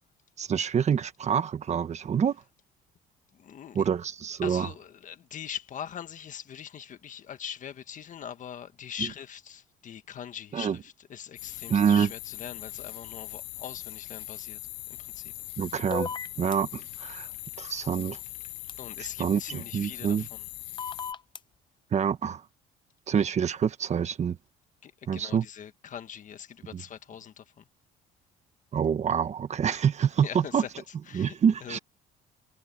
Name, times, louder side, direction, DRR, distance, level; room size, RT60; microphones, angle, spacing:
voice 1, 0.4-2.4 3.7-4.7 10.5-10.8 11.7-12.1 15.6-17.3 17.6-18.2 19.0-20.3 21.9-22.4 23.1-24.4 25.1-25.4 26.7-26.8 28.7-30.6 31.1-31.8, right 7 dB, 40° right, 1.6 m, -26 dB
voice 2, 3.3-3.8 4.4-14.6 14.9-15.3 17.2-17.6 18.4-20.4 24.8-27.7 30.2-30.7 31.1-31.3 31.6-31.8, left 8 dB, 50° left, 1.7 m, -42 dB
sound 1, 11.4-21.1, left 18 dB, 90° left, 0.7 m, -41 dB
sound 2, 15.9-16.6 18.7-18.8 20.8-21.4, left 6 dB, 30° left, 0.7 m, -34 dB
cardioid pair, 110°, 17 cm